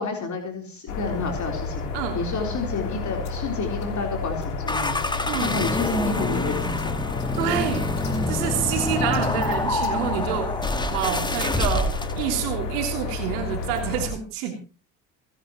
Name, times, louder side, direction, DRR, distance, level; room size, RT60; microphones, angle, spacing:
voice 1, 0.0-5.0 5.4-7.0, left 3 dB, 40° left, 2 dB, 3.9 m, -30 dB
sound 1, 0.9-14.1, left 4 dB, 80° left, 3.5 m, -31 dB
sound 2, 4.7-12.2, left 2 dB, 10° left, 1.6 m, -27 dB
voice 2, 5.3-5.6 7.4-7.9 8.3-10.5 10.9-14.5, right 9 dB, 70° right, 3 dB, 3.4 m, -27 dB
27.5 x 11.0 x 3.0 m, 0.35 s
hypercardioid pair, 65°, 45 cm